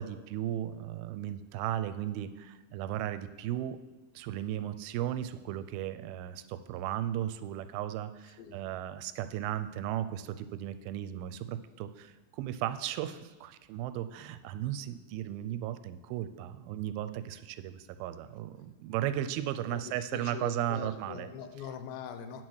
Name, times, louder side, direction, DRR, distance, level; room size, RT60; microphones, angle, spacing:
voice 1, 0.0-3.8 4.2-21.3, right 12 dB, 90° right, 12 dB, 2.4 m, -36 dB
voice 2, 19.7-22.4, left 7 dB, 85° left, 8 dB, 2.6 m, -42 dB
10.0 x 4.2 x 6.3 m, 1.2 s
omnidirectional pair, 4.3 m